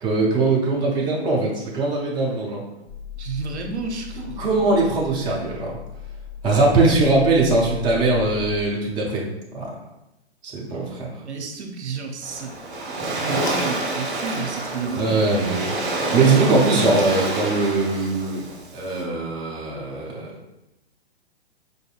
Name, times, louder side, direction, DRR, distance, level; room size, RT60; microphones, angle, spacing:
voice 1, 0.0-2.6 4.4-5.8 6.4-9.3 9.5-9.7 10.4-11.1 14.9-18.5 18.7-20.3, right 3 dB, 15° right, -3 dB, 0.4 m, -21 dB
sound 1, 2.9-8.6, left 8 dB, 5° left, 0.8 m, -37 dB
voice 2, 3.2-4.4 11.2-12.6 13.0-15.3, right 4 dB, 80° right, 3 dB, 0.7 m, -31 dB
Waves surf, 12.2-19.0, right 2 dB, 50° right, 1.2 m, -28 dB
Drip Hit, 13.5-15.3 16.4-18.0, left 1 dB, 40° left, 0.7 m, -41 dB
4.5 x 2.6 x 2.4 m, 0.93 s
figure-of-eight pair, 115°, 33 cm